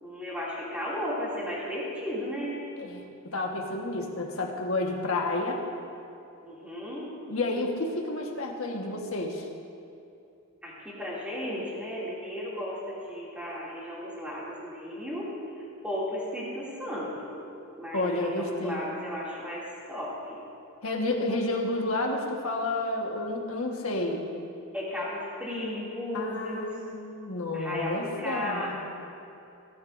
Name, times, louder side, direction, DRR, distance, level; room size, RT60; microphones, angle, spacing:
voice 1, 0.0-2.6 6.4-7.1 10.6-15.4 15.8-17.4 17.8-20.4 24.7-26.8 27.5-28.8, left 1 dB, 5° right, -7 dB, 2.5 m, -35 dB
voice 2, 2.8-5.6 7.3-9.5 17.9-18.8 20.8-24.2 26.1-28.7, left 2 dB, 65° left, 1 dB, 1.4 m, -30 dB
17.5 x 11.5 x 2.6 m, 2.7 s
head